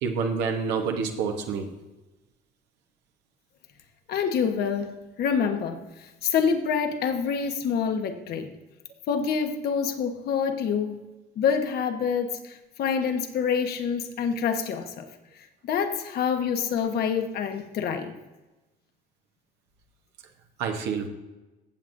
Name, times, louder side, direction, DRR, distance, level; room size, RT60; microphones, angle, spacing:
voice 1, 0.0-1.7 20.6-21.1, right 5 dB, 90° right, 3 dB, 1.0 m, -28 dB
voice 2, 4.1-8.5 9.1-11.0 11.4-15.1 15.6-18.1, left 6 dB, 70° left, 6 dB, 1.1 m, -27 dB
15.5 x 7.3 x 2.6 m, 1.1 s
cardioid pair, 110°, 17 cm